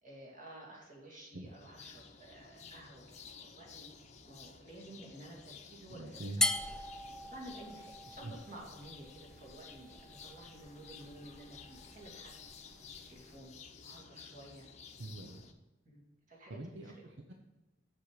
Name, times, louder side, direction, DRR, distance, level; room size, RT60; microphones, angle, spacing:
voice 1, 0.0-3.2 3.4-3.9 4.2-6.6 7.2-12.3 13.1-13.5 13.8-14.7 15.8-16.0 16.3-17.0, right 1 dB, 45° right, -3 dB, 2.8 m, -52 dB
sound 1, 1.4-15.5, left 5 dB, 40° left, 0.8 m, -54 dB
voice 2, 5.9-6.4 8.2-8.4 15.0-15.4 16.5-17.3, right 2 dB, 70° right, 3 dB, 0.8 m, -44 dB
sound 2, 6.4-13.4, left 2 dB, 5° left, 0.5 m, -40 dB
8.1 x 7.5 x 5.0 m, 1.1 s
head